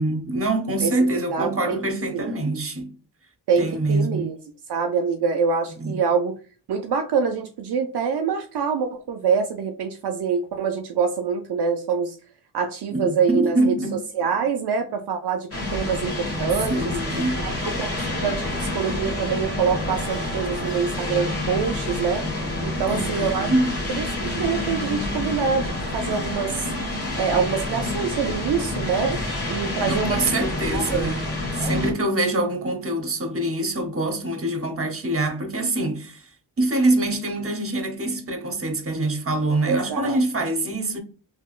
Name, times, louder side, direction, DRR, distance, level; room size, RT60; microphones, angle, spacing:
voice 1, 0.0-2.9 3.6-4.3 5.8-6.0 12.9-14.0 16.7-17.4 22.9-23.7 29.9-31.3 31.6-36.3 36.6-41.0, right 2 dB, 30° right, 0.9 m, -24 dB
voice 2, 1.3-1.8 2.1-2.3 3.5-4.3 4.7-6.4 6.7-12.2 12.5-13.7 14.2-16.9 17.4-23.5 23.9-26.7 27.2-29.2 29.5-30.2 30.7-31.1 31.6-31.7 39.6-40.2, right 6 dB, 65° right, 0.5 m, -25 dB
sound 1, 15.5-31.9, left 2 dB, 30° left, 1.5 m, -28 dB
3.5 x 2.7 x 2.4 m
cardioid pair, 60°, 42 cm